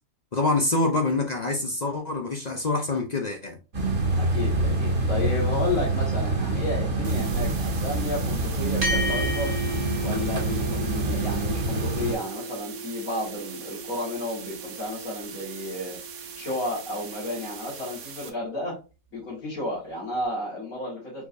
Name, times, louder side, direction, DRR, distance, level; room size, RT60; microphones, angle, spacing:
voice 1, 0.3-3.6, left 2 dB, 50° left, 3 dB, 0.5 m, -26 dB
sound 1, 3.7-12.1, right 2 dB, 65° right, 1.9 m, -26 dB
voice 2, 4.2-9.5 10.0-16.0 16.3-18.8 19.1-21.3, left 2 dB, 70° left, -7 dB, 2.3 m, -32 dB
sound 2, 7.0-18.3, right 7 dB, 80° right, 1.2 m, -42 dB
sound 3, 8.8-17.5, right 1 dB, 40° right, 1.5 m, -35 dB
4.5 x 4.3 x 2.6 m, 0.30 s
omnidirectional pair, 1.5 m